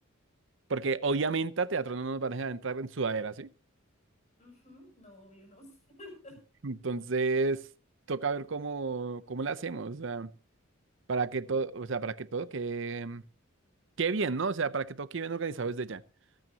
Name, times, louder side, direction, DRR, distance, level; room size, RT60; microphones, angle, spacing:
voice 1, 0.7-3.5 6.6-7.7 8.1-10.3 11.1-13.2 14.0-16.0, right 4 dB, 60° right, 0.7 m, -31 dB
voice 2, 4.4-6.4 11.4-11.5, left 1 dB, 35° left, 7.1 m, -51 dB
26.0 x 9.2 x 2.9 m
head